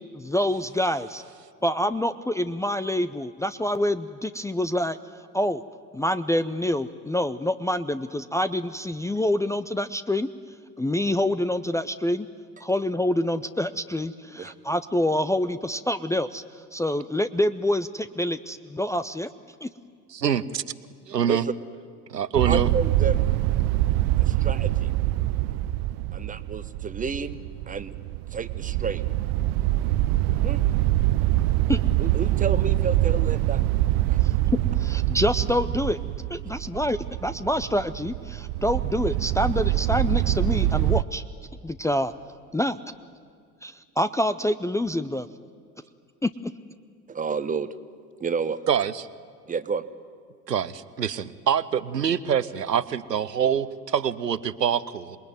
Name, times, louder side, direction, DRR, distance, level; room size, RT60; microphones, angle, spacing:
voice 1, 0.1-1.2 1.6-5.0 5.3-5.6 5.9-10.3 10.8-12.3 12.6-16.4 16.7-19.3 19.6-19.7 31.7-31.8 34.2-34.3 34.8-36.0 36.3-41.2 41.6-42.1 42.5-42.8 43.6-45.3 46.2-46.5, left 1 dB, 5° left, 9 dB, 0.6 m, -26 dB
voice 2, 20.1-20.6 21.1-21.5 22.1-22.7 48.7-49.1 50.5-55.2, right 8 dB, 85° right, 16 dB, 0.9 m, -25 dB
voice 3, 21.2-21.5 22.4-23.2 24.2-24.9 26.1-27.4 27.7-27.9 28.3-29.1 30.4-30.6 32.0-33.6 34.1-34.2 47.1-47.7 48.2-48.6 49.5-49.8, right 5 dB, 15° right, 12 dB, 1.2 m, -30 dB
sound 1, 22.3-41.0, right 15 dB, 45° right, 0.7 m, -24 dB
27.0 x 21.0 x 9.4 m, 2.2 s
figure-of-eight pair, 70°, 48 cm